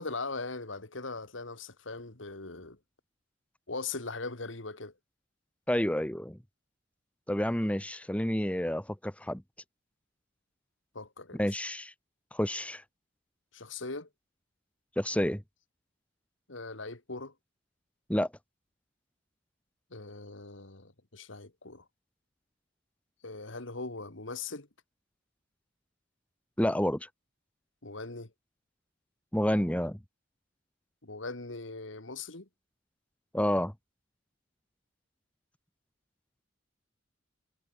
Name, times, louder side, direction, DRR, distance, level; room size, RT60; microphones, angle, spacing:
voice 1, 0.0-2.8 3.7-4.9 10.9-11.4 13.5-14.1 16.5-17.3 19.9-21.8 23.2-24.7 27.8-28.3 31.0-32.5, left 3 dB, 75° left, 2.6 m, -40 dB
voice 2, 5.7-6.4 7.3-9.4 11.3-11.9 12.3-12.8 15.0-15.4 18.1-18.3 26.6-27.1 29.3-30.0 33.3-33.7, equal, 5° left, 1.7 m, -29 dB
head